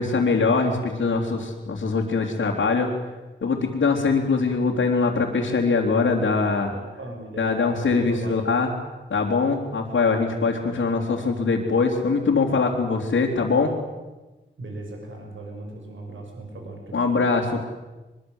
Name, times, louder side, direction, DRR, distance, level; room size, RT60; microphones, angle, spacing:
voice 1, 0.0-2.9 3.4-6.7 7.4-8.7 9.1-13.7 16.9-17.6, left 4 dB, 85° left, -5 dB, 3.4 m, -22 dB
voice 2, 6.7-8.6 14.6-17.0, right 2 dB, 80° right, 2 dB, 6.3 m, -38 dB
24.0 x 23.0 x 8.1 m, 1.1 s
wide cardioid pair, 120°, 20 cm